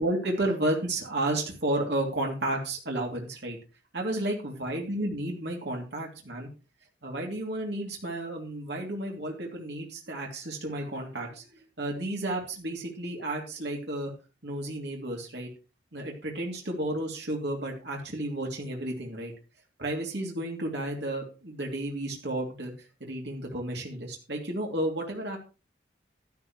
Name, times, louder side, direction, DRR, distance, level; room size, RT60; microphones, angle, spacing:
voice 1, 0.0-3.6 3.9-6.5 7.0-14.1 14.4-15.5 15.9-19.3 19.8-22.7 23.0-25.4, right 1 dB, 60° right, 0 dB, 2.9 m, -32 dB
12.0 x 12.0 x 3.2 m, 0.31 s
head